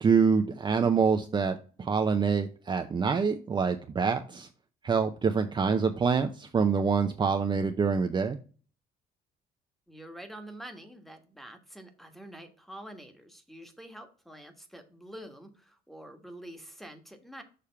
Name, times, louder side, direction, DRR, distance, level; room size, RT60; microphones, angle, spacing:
voice 1, 0.0-4.5 4.8-8.4, right 5 dB, 25° right, 6 dB, 0.6 m, -26 dB
voice 2, 9.9-17.4, right 1 dB, ahead, 6 dB, 1.4 m, -46 dB
6.7 x 3.5 x 5.6 m, 0.38 s
cardioid pair, 110°, 17 cm